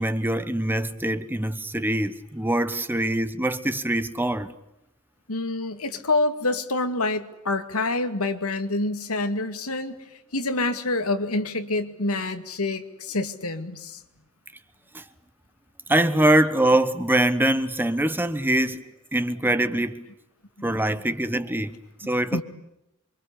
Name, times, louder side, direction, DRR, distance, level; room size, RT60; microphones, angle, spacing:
voice 1, 0.0-4.5 14.9-15.0 15.9-18.8 19.1-20.1 20.6-22.4, right 1 dB, 10° right, 1.1 m, -23 dB
voice 2, 5.3-10.0 10.3-14.0 20.6-21.0 22.3-22.4, left 2 dB, 75° left, 2.3 m, -27 dB
28.0 x 24.0 x 8.6 m
head